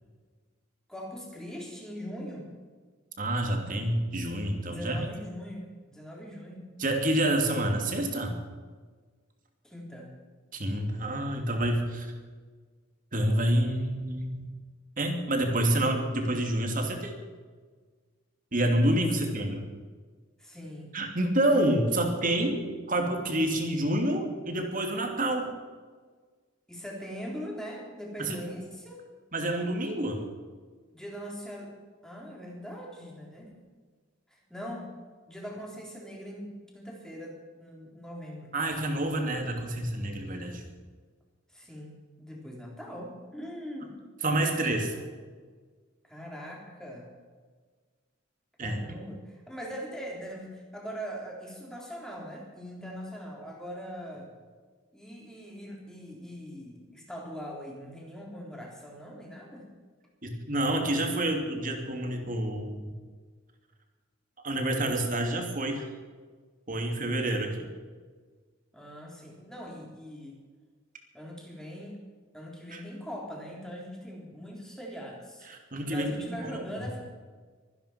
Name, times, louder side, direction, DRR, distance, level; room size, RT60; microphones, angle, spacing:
voice 1, 0.9-2.5 4.7-6.6 9.6-10.1 20.4-21.0 26.7-29.0 30.9-31.7 32.0-33.6 34.3-34.9 35.3-38.5 41.5-44.0 44.9-45.1 46.0-47.1 48.6-54.3 54.9-59.7 68.7-70.4 71.1-72.0 72.3-75.5 75.7-77.0, equal, 5° left, -2 dB, 3.9 m, -41 dB
voice 2, 3.2-5.0 6.8-8.3 10.5-12.1 13.1-14.5 15.0-17.1 18.5-19.6 20.9-25.5 28.2-28.4 29.3-30.2 38.5-40.6 44.2-44.9 48.6-48.8 60.2-62.9 64.4-65.9 66.7-67.7 72.7-72.8 75.5-76.1 76.4-76.5, right 1 dB, 40° right, 3 dB, 2.8 m, -28 dB
24.0 x 10.0 x 6.0 m, 1.5 s
head